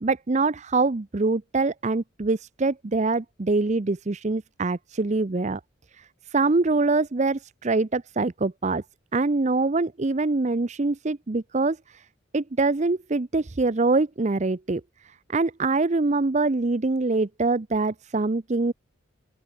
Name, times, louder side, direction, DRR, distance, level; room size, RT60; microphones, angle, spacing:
voice 1, 0.0-5.6 6.0-8.8 9.1-12.0 12.3-14.8 15.3-18.7, right 3 dB, 35° right, 0.6 m, -24 dB
open air
head